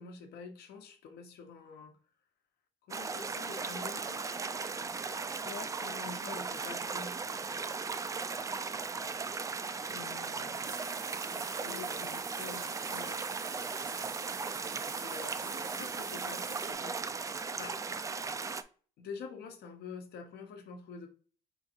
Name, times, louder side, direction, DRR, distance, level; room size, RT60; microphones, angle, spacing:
voice 1, 0.0-2.0 2.8-4.3 6.0-7.2 11.6-12.1 13.8-14.1 14.6-17.2 17.5-17.8 19.0-21.1, left 5 dB, 75° left, 5 dB, 1.1 m, -47 dB
sound 1, 2.9-18.6, right 4 dB, 20° right, 0.3 m, -37 dB
voice 2, 5.4-6.4 9.9-10.8 11.1-13.2, left 11 dB, 60° left, 4 dB, 0.5 m, -49 dB
sound 2, 10.1-16.7, right 7 dB, 55° right, 0.8 m, -46 dB
3.7 x 2.7 x 4.4 m, 0.41 s
cardioid pair, 110°, 17 cm